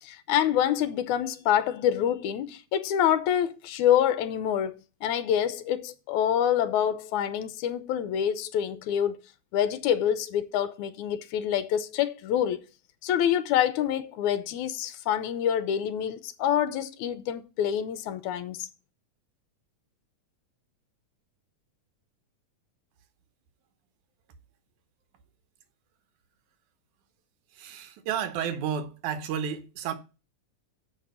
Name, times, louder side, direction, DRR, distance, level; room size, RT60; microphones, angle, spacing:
voice 1, 0.0-4.8 5.0-9.2 9.5-12.6 13.0-18.7, left 10 dB, 80° left, 2.2 m, -26 dB
voice 2, 27.5-29.9, right 8 dB, 85° right, 2.5 m, -32 dB
7.4 x 5.1 x 6.9 m
omnidirectional pair, 3.4 m